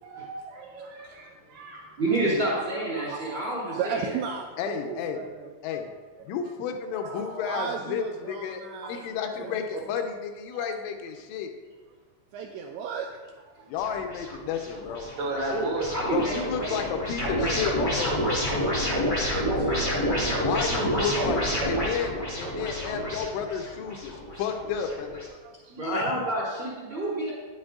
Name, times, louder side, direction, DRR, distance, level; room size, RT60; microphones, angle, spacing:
voice 1, 0.0-1.9 3.1-3.8 6.9-7.6 8.8-9.1 9.3-9.8 10.5-10.7 15.2-16.2, right 2 dB, 65° right, -2 dB, 2.9 m, -36 dB
voice 2, 2.0-4.0 15.5-16.3 16.6-16.8 25.7-27.3, right 2 dB, 50° right, -6 dB, 1.4 m, -28 dB
voice 3, 2.8-3.2 3.8-5.5 7.4-9.6 12.3-13.1 13.4-13.7 14.3-14.4 14.8-15.4 18.6-18.9 19.2-20.6 22.5-22.6 25.3-25.8 26.9-27.1, right 6 dB, 85° right, 2 dB, 2.6 m, -36 dB
voice 4, 4.6-5.2 5.6-5.9 6.3-8.6 8.9-11.5 13.7-15.1 16.1-19.3 20.4-25.2 25.8-26.0, left 7 dB, 80° left, 5 dB, 3.0 m, -32 dB
sound 1, 13.8-25.3, equal, 35° left, 0.7 m, -29 dB
10.5 x 8.9 x 3.6 m, 1.4 s
omnidirectional pair, 5.8 m